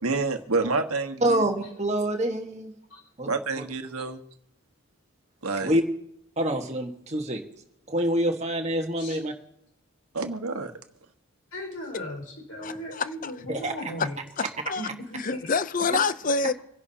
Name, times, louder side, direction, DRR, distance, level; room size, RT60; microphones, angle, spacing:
voice 1, 0.0-1.4 3.3-4.2 5.4-5.8 10.1-10.7, right 3 dB, 85° right, 6 dB, 1.4 m, -28 dB
voice 2, 1.2-2.7 3.2-3.3 5.6-5.8 6.4-7.4 7.9-9.3 13.6-13.7, right 1 dB, 30° right, 2 dB, 1.6 m, -26 dB
voice 3, 11.5-14.5 14.7-14.9 15.1-15.4, left 1 dB, 70° left, 0 dB, 5.2 m, -37 dB
voice 4, 12.6-13.3 14.4-14.9 15.2-16.5, left 4 dB, 40° left, 13 dB, 0.6 m, -27 dB
26.0 x 11.0 x 2.9 m, 0.76 s
head